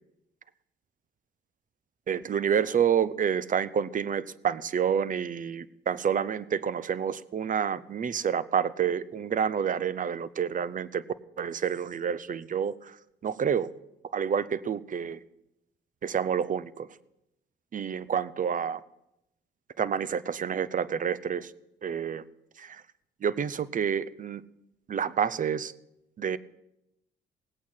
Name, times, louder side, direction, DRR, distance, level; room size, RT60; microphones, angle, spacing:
voice 1, 2.1-11.0 11.4-13.0 13.2-13.7 14.1-15.2 16.0-16.9 17.7-18.8 19.8-21.5 21.8-22.2 22.6-22.8 23.2-24.4 24.9-25.7 26.2-26.4, right 7 dB, 40° right, 18 dB, 0.7 m, -28 dB
18.0 x 8.6 x 5.7 m, 0.87 s
cardioid pair, 90°, 20 cm